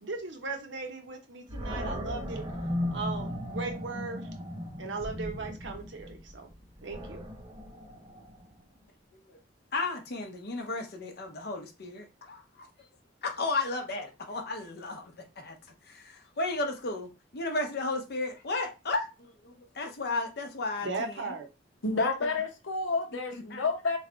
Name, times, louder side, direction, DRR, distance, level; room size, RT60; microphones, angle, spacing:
voice 1, 0.0-2.5 2.9-4.3 4.8-6.5 6.8-7.3 20.8-21.5, right 3 dB, 65° right, 0.8 m, -37 dB
Animal, 1.5-8.6, left 1 dB, 20° right, 0.6 m, -37 dB
voice 2, 9.7-12.9 13.2-15.6 15.8-21.4 22.0-22.3 23.3-23.6, left 2 dB, 55° left, 0.7 m, -34 dB
voice 3, 21.8-24.0, left 3 dB, 85° left, 0.9 m, -30 dB
3.2 x 2.2 x 3.8 m
head